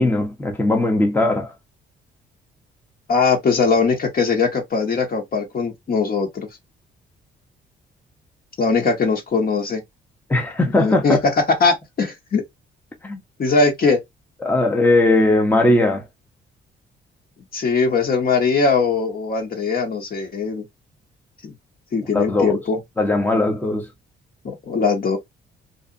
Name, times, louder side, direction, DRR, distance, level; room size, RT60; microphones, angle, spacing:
voice 1, 0.0-1.5 10.3-11.2 13.0-13.2 14.4-16.0 22.1-22.6 23.0-23.9, left 2 dB, 10° left, 0.7 m, -18 dB
voice 2, 3.1-6.5 8.6-9.8 10.8-11.2 11.6-12.4 13.4-14.0 17.5-20.6 21.4-21.5 21.9-22.8 24.4-25.2, left 4 dB, 50° left, 1.2 m, -20 dB
2.6 x 2.3 x 2.4 m
cardioid pair, 90°, 20 cm